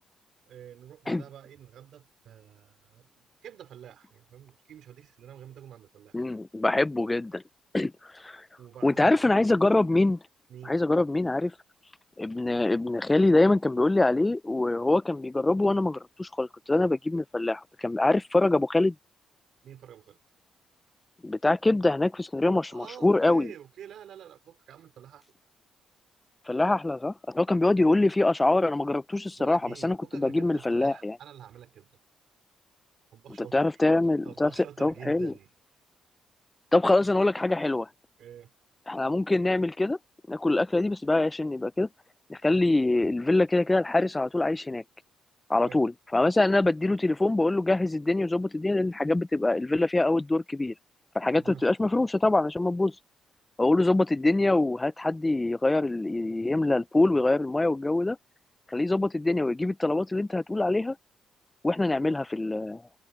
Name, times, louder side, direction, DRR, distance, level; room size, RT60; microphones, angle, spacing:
voice 1, 0.5-6.2 8.6-9.2 10.5-10.8 19.6-20.2 22.7-25.2 29.4-31.9 33.1-33.6 34.2-35.5 38.2-38.5 43.0-43.1 45.5-45.8 51.4-51.7, right 10 dB, 70° right, 4.3 m, -47 dB
voice 2, 6.1-7.4 7.7-8.4 8.8-10.2 10.7-11.5 12.2-18.9 21.2-23.5 26.5-31.2 33.5-35.3 36.7-37.9 38.9-40.0 40.3-41.9 42.3-44.8 45.5-50.7 51.1-52.9 53.6-58.2 58.7-61.0 61.6-62.8, left 2 dB, 15° left, 0.6 m, -24 dB
cardioid pair, 90°, 0 cm